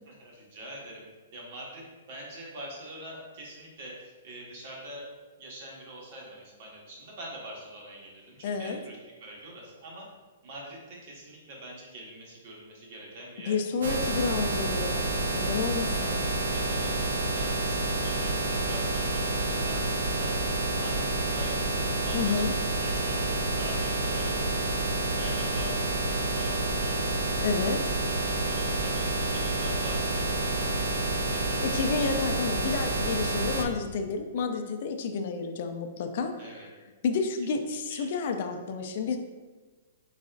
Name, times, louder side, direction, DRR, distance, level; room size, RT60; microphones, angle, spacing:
voice 1, 0.0-1.8 2.1-5.1 5.4-10.1 10.4-13.5 15.9-19.8 20.2-20.5 20.7-24.8 25.2-27.3 27.6-27.8 28.1-31.9 36.4-36.7 37.7-38.5, right 1 dB, 55° right, -2 dB, 1.3 m, -44 dB
voice 2, 8.4-8.8 13.5-15.1 15.3-16.2 22.1-22.5 27.4-27.8 31.6-36.6 37.0-39.2, left 5 dB, 55° left, 5 dB, 0.4 m, -30 dB
sound 1, 13.8-33.7, right 2 dB, 80° right, 0.6 m, -29 dB
4.0 x 3.6 x 2.4 m, 1.3 s
hypercardioid pair, 145°, 0 cm